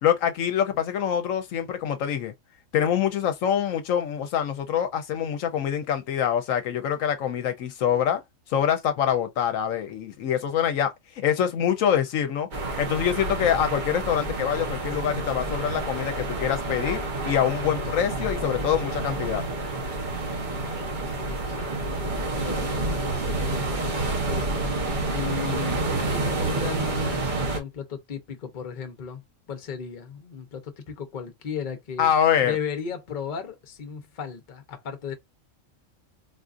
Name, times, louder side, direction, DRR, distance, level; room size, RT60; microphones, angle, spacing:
voice 1, 0.0-2.3 2.7-8.2 8.5-12.5 12.8-19.4 32.0-32.6, left 9 dB, 75° left, 1.0 m, -25 dB
sound 1, 12.5-27.6, right 2 dB, 40° right, 0.8 m, -29 dB
voice 2, 20.1-21.7 22.4-24.5 25.1-29.2 29.5-32.1 32.4-35.1, left 7 dB, 40° left, 0.8 m, -36 dB
4.0 x 2.4 x 2.5 m
omnidirectional pair, 1.4 m